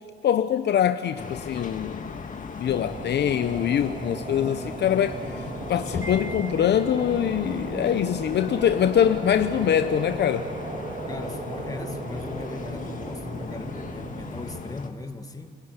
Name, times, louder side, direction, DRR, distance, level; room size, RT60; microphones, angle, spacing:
voice 1, 0.2-2.2 2.6-10.5, left 9 dB, 60° left, 10 dB, 0.8 m, -24 dB
sound 1, 1.2-14.9, left 5 dB, 40° left, 2.1 m, -38 dB
sound 2, 2.7-14.6, right 3 dB, 40° right, 2.7 m, -36 dB
Wind chime, 6.0-7.4, equal, 15° right, 1.8 m, -41 dB
voice 2, 11.1-15.6, left 3 dB, 20° left, 6 dB, 2.2 m, -38 dB
29.0 x 15.5 x 9.8 m, 2.2 s
cardioid pair, 90°, 20 cm